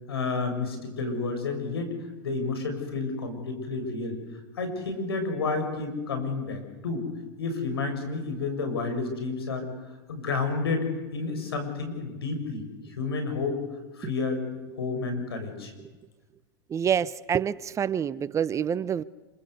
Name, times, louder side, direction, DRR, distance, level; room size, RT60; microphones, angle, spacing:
voice 1, 0.1-1.9 2.2-4.2 4.5-7.1 7.4-9.7 10.1-13.6 13.9-14.4 14.8-15.7, left 3 dB, 85° left, 6 dB, 7.4 m, -30 dB
voice 2, 16.7-19.0, right 8 dB, 25° right, 18 dB, 0.8 m, -27 dB
27.5 x 26.0 x 8.3 m, 1.2 s
hypercardioid pair, 105°, 12 cm